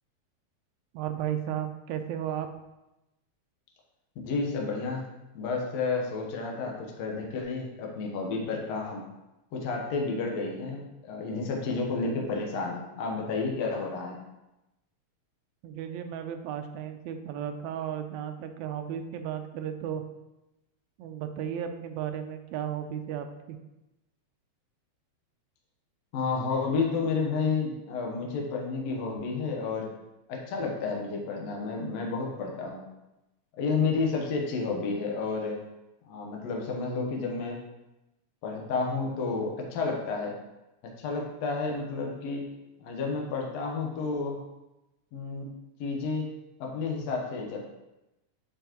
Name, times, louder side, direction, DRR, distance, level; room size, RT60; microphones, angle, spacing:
voice 1, 0.9-2.5 15.6-20.0 21.0-23.6, right 9 dB, 80° right, 7 dB, 1.9 m, -34 dB
voice 2, 4.2-5.0 5.3-9.0 9.5-14.2 26.1-29.9 30.3-32.8 33.6-35.6 36.0-37.6 38.4-40.3 41.0-42.4 42.8-44.4 45.1-45.5 45.8-46.3 46.6-47.6, left 4 dB, 70° left, 0 dB, 2.1 m, -31 dB
9.0 x 4.6 x 3.0 m, 0.97 s
omnidirectional pair, 3.3 m